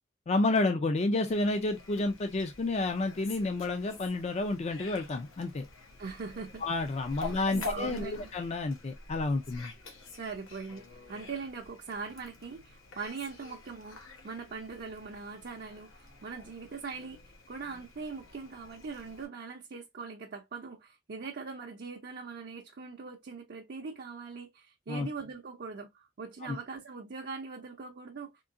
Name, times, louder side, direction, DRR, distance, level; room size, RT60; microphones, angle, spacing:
voice 1, 0.3-5.6 6.6-9.7 24.9-25.1 26.4-26.6, left 2 dB, 35° left, 0.4 m, -30 dB
Fowl, 1.3-19.3, left 3 dB, 90° left, 1.0 m, -47 dB
voice 2, 6.0-6.6 7.2-8.3 10.2-17.2 17.5-28.3, right 4 dB, 55° right, 0.5 m, -41 dB
3.7 x 2.7 x 2.5 m
head